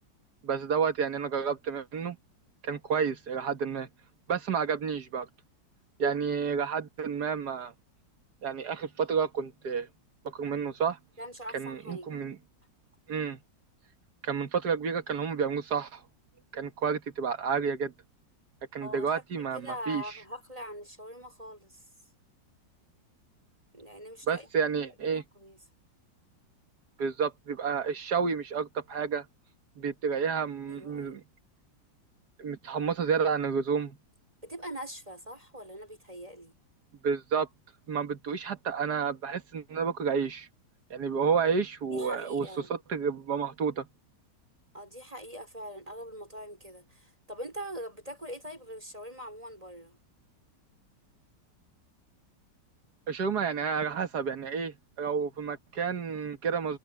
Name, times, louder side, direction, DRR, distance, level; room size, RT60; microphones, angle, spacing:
voice 1, 0.4-2.2 2.6-3.9 4.3-5.3 6.0-7.7 8.4-9.9 10.2-11.0 11.5-12.4 13.1-13.4 14.2-16.0 16.5-17.9 18.7-20.0 24.3-25.2 27.0-29.3 29.8-31.2 32.4-34.0 37.0-37.5 37.9-40.5 40.9-43.9 53.1-56.8, right 6 dB, 60° right, 2.0 m, -30 dB
voice 2, 11.2-12.2 18.8-21.8 23.7-24.5 24.8-25.6 30.7-31.2 34.4-36.5 41.9-42.7 44.7-50.0, equal, 20° right, 5.1 m, -43 dB
omnidirectional pair, 1.9 m